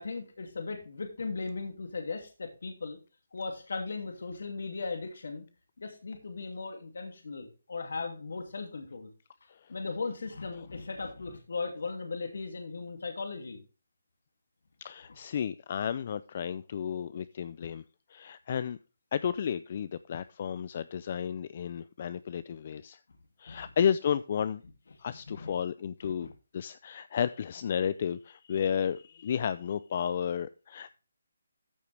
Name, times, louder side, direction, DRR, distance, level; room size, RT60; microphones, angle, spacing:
voice 1, 0.0-3.0 3.3-5.4 5.8-9.1 9.7-13.6 23.5-23.7 25.0-25.5 26.0-26.3, left 4 dB, 70° left, 4 dB, 2.5 m, -37 dB
voice 2, 14.8-17.8 18.1-18.8 19.1-23.0 23.4-24.6 25.0-26.3 26.5-31.0, left 8 dB, 40° left, 15 dB, 0.4 m, -32 dB
14.0 x 6.6 x 3.4 m, 0.32 s
hypercardioid pair, 165°, 0 cm